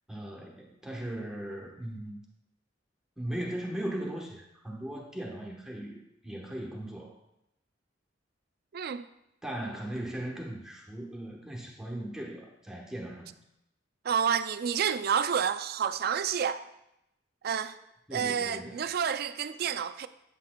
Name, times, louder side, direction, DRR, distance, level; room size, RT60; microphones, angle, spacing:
voice 1, 0.1-2.2 3.2-7.1 9.4-13.3 18.1-18.8, right 1 dB, 5° right, 1.0 m, -38 dB
voice 2, 8.7-9.1 14.0-16.6 17.4-17.8 18.1-20.1, right 7 dB, 55° right, 0.4 m, -29 dB
8.6 x 8.3 x 2.2 m
head